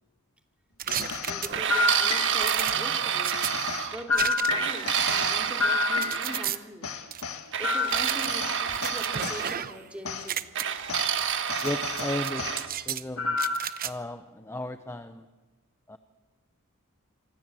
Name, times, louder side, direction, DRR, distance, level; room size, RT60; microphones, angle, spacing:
sound 1, 0.8-1.9 2.4-3.5 4.1-4.7 5.1-6.6 7.1-7.2 7.9-9.9 10.2-10.6 11.2-11.7 12.0-13.0 13.4-13.9, right 9 dB, 40° right, 0.9 m, -34 dB
sound 2, 0.9-2.7 3.3-6.5 6.8-9.4 10.0-10.3 10.9-11.1 11.5-12.6 13.2-13.8, left 3 dB, 70° left, 2.1 m, -30 dB
voice 1, 0.9-3.6 3.9-7.0 7.6-10.4, equal, 5° right, 3 dB, 2.8 m, -42 dB
sound 3, 1.5-4.0 4.5-6.4 7.5-9.6 10.5-12.7, right 8 dB, 60° right, 1.6 m, -29 dB
voice 2, 11.6-12.5 12.9-13.4 13.8-15.2 15.9-16.0, left 1 dB, 10° left, 9 dB, 0.8 m, -34 dB
26.5 x 25.5 x 7.7 m, 1.3 s
head